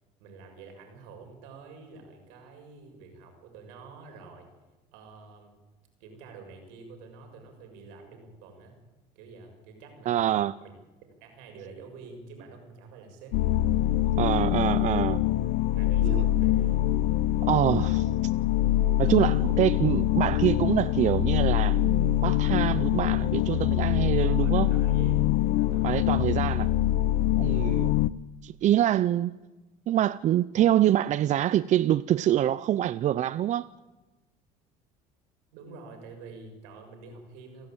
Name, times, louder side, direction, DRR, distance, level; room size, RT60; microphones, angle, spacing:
voice 1, 0.2-4.5 4.9-5.5 6.0-8.8 9.1-10.7 11.2-13.7 15.7-16.7 19.0-19.4 24.2-25.2 25.5-26.2 27.4-27.7 35.5-37.7, right 4 dB, 80° right, 6.7 m, -48 dB
voice 2, 10.1-10.5 14.2-15.2 16.0-16.2 17.4-18.1 19.0-24.7 25.8-26.7 27.4-27.9 28.4-29.4 29.9-33.7, right 12 dB, 45° right, 0.6 m, -25 dB
sound 1, 13.3-28.1, left 14 dB, 75° left, 0.7 m, -24 dB
29.0 x 11.5 x 8.9 m
supercardioid pair, 100°, 17 cm